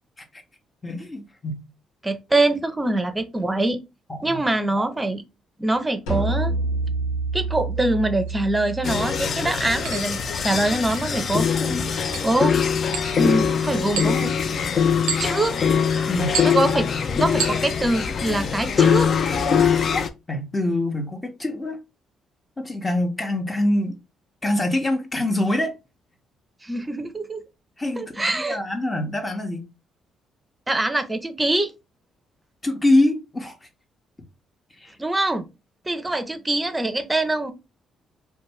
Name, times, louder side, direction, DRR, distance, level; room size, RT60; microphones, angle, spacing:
voice 1, 0.8-1.6 4.1-4.4 16.1-16.4 20.3-21.8 22.6-24.0 24.4-25.7 27.8-29.6 32.6-33.6 34.8-34.9, left 1 dB, 25° left, 0.7 m, -24 dB
voice 2, 2.0-3.8 4.2-5.2 5.6-6.5 7.3-11.9 12.2-12.6 13.1-14.3 15.2-15.6 16.4-16.9 17.1-19.1 26.6-27.4 28.0-28.6 30.7-31.7 35.0-35.4 35.9-37.5, right 2 dB, 15° right, 0.5 m, -24 dB
sound 1, 6.1-11.5, right 3 dB, 90° left, 0.7 m, -29 dB
sound 2, 8.3-8.4 9.8-10.1 10.9-11.2 12.1-12.3 12.9-13.4 13.9-14.4 15.1-15.6 16.3-16.6 17.4-17.7, right 7 dB, 85° right, 0.4 m, -30 dB
sound 3, 8.8-20.1, left 7 dB, 55° left, 0.3 m, -22 dB
2.5 x 2.2 x 3.1 m
supercardioid pair, 55°, 0 cm